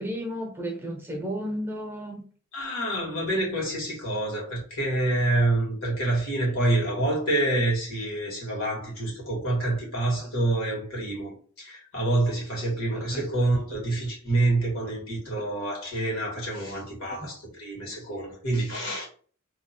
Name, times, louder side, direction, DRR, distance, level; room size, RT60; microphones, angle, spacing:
voice 1, 0.0-2.2 12.9-13.2, equal, 10° right, 0.8 m, -33 dB
voice 2, 2.5-11.3 11.6-19.0, right 2 dB, 75° left, 1.7 m, -27 dB
2.9 x 2.3 x 4.2 m
head